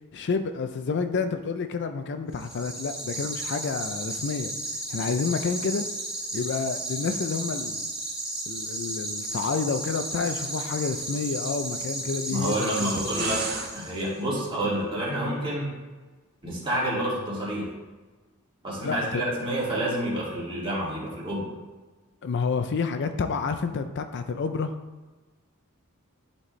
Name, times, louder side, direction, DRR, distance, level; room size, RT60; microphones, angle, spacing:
voice 1, 0.1-4.5 4.9-5.8 6.3-7.8 8.5-13.0 18.8-19.2 22.2-24.7, left 4 dB, 55° left, 8 dB, 0.4 m, -29 dB
sound 1, 2.3-14.2, right 2 dB, 5° right, 2.2 m, -34 dB
voice 2, 12.3-13.4 13.7-15.7 16.4-17.7 18.6-21.4, right 1 dB, 25° right, -6 dB, 2.2 m, -28 dB
sound 2, 12.8-13.7, right 5 dB, 45° right, 0.8 m, -34 dB
11.0 x 4.2 x 3.2 m, 1.3 s
head